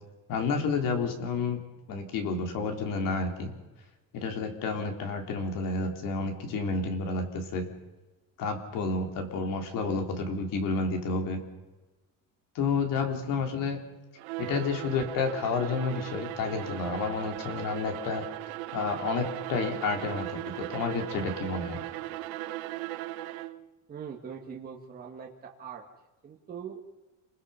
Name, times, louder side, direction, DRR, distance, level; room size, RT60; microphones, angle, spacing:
voice 1, 0.3-1.6 1.9-3.5 4.1-7.7 8.4-11.4 12.6-13.8 14.4-18.2 18.7-21.8, left 4 dB, 55° left, 4 dB, 3.7 m, -30 dB
Bowed string instrument, 14.2-23.7, right 16 dB, 80° right, 1.2 m, -38 dB
voice 2, 23.9-25.8 26.2-26.8, right 7 dB, 25° right, 0 dB, 1.7 m, -42 dB
28.5 x 21.0 x 5.7 m, 1.2 s
cardioid pair, 180°, 38 cm